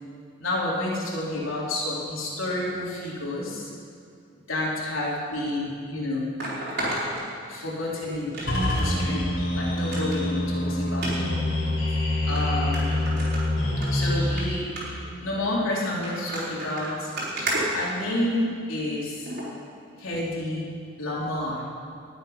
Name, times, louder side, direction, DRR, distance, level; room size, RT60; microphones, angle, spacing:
voice 1, 0.4-3.7 4.5-6.3 7.5-8.3 8.7-9.3 9.5-11.4 12.2-13.0 13.9-14.7 15.2-17.1 17.7-19.3 20.0-20.7 21.0-21.6, left 1 dB, 80° left, -5 dB, 3.6 m, -29 dB
sound 1, 5.3-5.4 6.4-7.8 8.3-8.9 9.3-9.4 9.8-10.2 10.9-11.1 11.9-12.0 12.4-12.5 12.7-13.9 14.2-14.4 14.8-15.1 15.8-18.5 19.3-19.5 20.0-20.1, right 1 dB, 50° right, 4.2 m, -32 dB
sound 2, 8.4-14.3, left 1 dB, 60° left, 3.6 m, -25 dB
19.0 x 8.1 x 5.6 m, 2.3 s
head